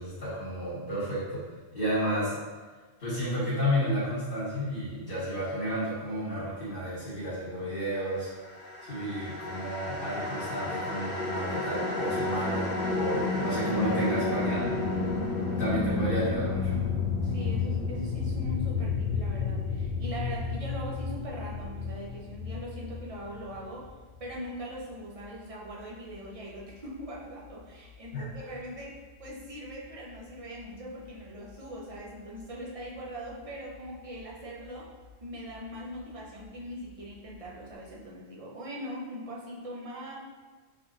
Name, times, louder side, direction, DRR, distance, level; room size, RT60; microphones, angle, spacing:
voice 1, 0.0-1.4 1.7-2.4 3.0-8.3 8.8-14.7 15.6-16.8 28.1-28.3, equal, 50° left, -13 dB, 1.5 m, -31 dB
sound 1, 8.4-23.6, left 4 dB, 75° left, 1.1 m, -31 dB
voice 2, 17.2-23.9 24.2-34.9 35.2-40.2, equal, 40° right, -4 dB, 0.7 m, -41 dB
sound 2, 18.8-37.7, left 5 dB, 35° left, 0.9 m, -55 dB
4.1 x 3.7 x 2.4 m, 1.4 s
omnidirectional pair, 1.1 m